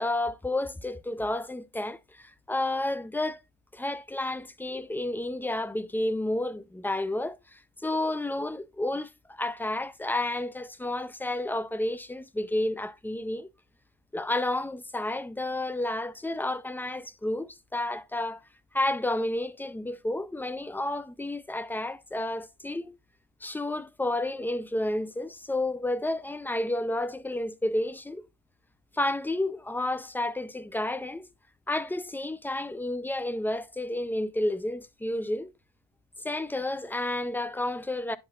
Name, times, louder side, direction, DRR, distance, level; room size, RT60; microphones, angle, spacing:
voice 1, 0.0-3.4 3.7-13.5 14.1-18.5 18.7-22.9 23.4-28.3 28.9-31.3 31.7-35.5 36.2-38.2, left 1 dB, 10° left, 0.6 m, -31 dB
10.0 x 5.8 x 2.4 m
cardioid pair, 90°, 20 cm